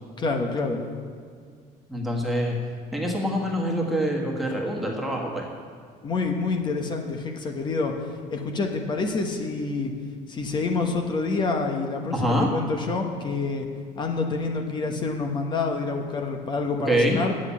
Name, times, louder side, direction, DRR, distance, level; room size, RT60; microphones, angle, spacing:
voice 1, 0.2-0.8 6.0-7.9 8.3-9.9 10.3-13.7 14.0-17.3, left 3 dB, 30° left, 3 dB, 1.0 m, -27 dB
voice 2, 1.9-2.6 2.9-5.5 12.1-12.5 16.8-17.2, equal, ahead, -3 dB, 1.7 m, -25 dB
8.1 x 7.4 x 8.5 m, 2.1 s
cardioid pair, 155°, 16 cm